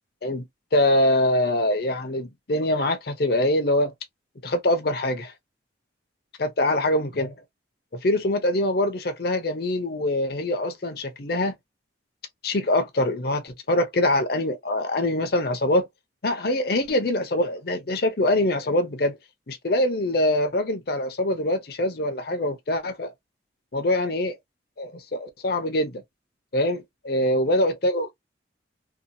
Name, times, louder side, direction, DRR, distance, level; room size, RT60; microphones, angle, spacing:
voice 1, 0.7-3.9 4.4-5.3 6.4-7.3 7.9-11.6 12.4-15.9 16.2-19.2 19.5-23.1 23.7-24.4 24.8-26.0 26.5-28.1, left 1 dB, 55° left, 0.6 m, -24 dB
2.8 x 2.3 x 2.5 m
head